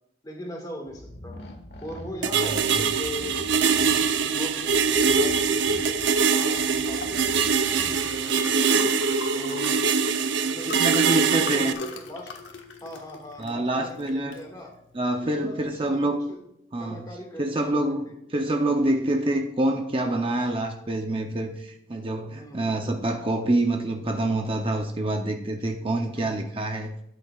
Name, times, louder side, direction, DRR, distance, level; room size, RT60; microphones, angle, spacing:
voice 1, 0.2-1.4 1.8-6.0 6.3-9.0 9.4-9.8 10.4-10.7 11.1-12.3 12.8-14.8 15.2-16.4 16.8-17.8 18.1-18.2 22.4-23.0 26.1-26.5, left 1 dB, 20° left, 1 dB, 1.8 m, -40 dB
sound 1, 0.9-8.6, left 1 dB, 60° left, 1.2 m, -44 dB
sound 2, 2.2-11.7, right 5 dB, 80° right, 0.7 m, -23 dB
voice 2, 2.3-2.8 10.8-11.7 13.4-14.4 14.9-16.2 16.7-17.0 17.4-18.0 18.3-26.9, right 1 dB, 30° right, 4 dB, 0.6 m, -26 dB
Liquid, 6.1-16.2, left 3 dB, 90° left, 1.4 m, -41 dB
12.5 x 8.8 x 2.4 m, 0.81 s
head